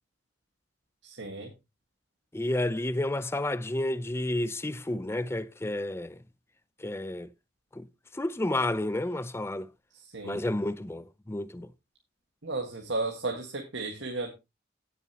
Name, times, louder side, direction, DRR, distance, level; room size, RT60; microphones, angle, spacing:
voice 1, 1.0-1.5 10.1-10.4 12.4-14.3, right 2 dB, 80° right, 1.7 m, -34 dB
voice 2, 2.3-6.2 6.8-7.3 7.7-7.9 8.1-9.7 10.2-11.7, left 1 dB, 15° left, 0.5 m, -31 dB
17.0 x 6.8 x 2.9 m
head